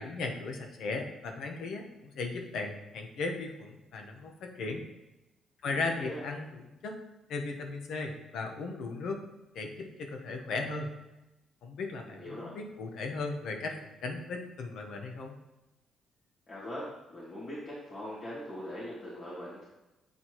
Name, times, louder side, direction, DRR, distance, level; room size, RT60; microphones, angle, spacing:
voice 1, 0.0-4.8 5.6-7.0 7.3-9.2 9.5-10.9 11.6-15.4, left 3 dB, 75° left, 3 dB, 0.9 m, -37 dB
voice 2, 5.7-6.2 12.1-12.5 16.5-19.6, equal, 50° left, -10 dB, 2.0 m, -41 dB
8.1 x 4.2 x 3.0 m, 1.0 s
cardioid pair, 90°, 0 cm